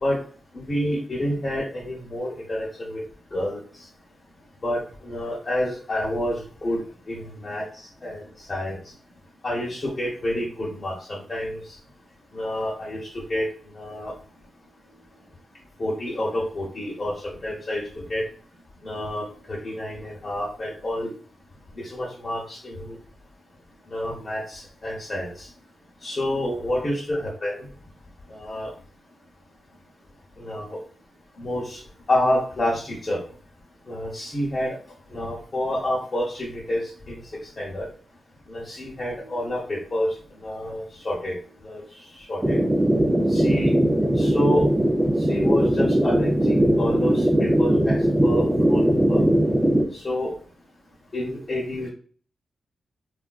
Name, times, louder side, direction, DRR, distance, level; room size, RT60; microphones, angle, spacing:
voice 1, 0.7-3.0 3.3-3.6 4.6-6.8 7.1-7.6 8.0-8.2 8.5-8.8 9.4-11.6 12.3-13.0 13.3-13.5 13.7-14.1 15.8-17.1 17.4-17.8 18.1-18.2 18.8-21.1 21.9-22.9 23.9-25.5 26.0-27.5 28.3-28.7 30.4-30.8 31.4-31.8 32.1-33.2 33.9-34.8 35.1-37.2 37.6-37.8 38.5-40.1 40.4-41.3 41.6-41.8 42.3-42.6 43.3-43.7 44.2-44.6 45.3-49.2 49.9-50.3 51.1-51.9, left 1 dB, 40° left, -4 dB, 0.8 m, -28 dB
sound 1, 42.4-49.8, right 1 dB, 15° right, 0.4 m, -20 dB
3.4 x 2.4 x 2.3 m, 0.43 s
cardioid pair, 100°, 0 cm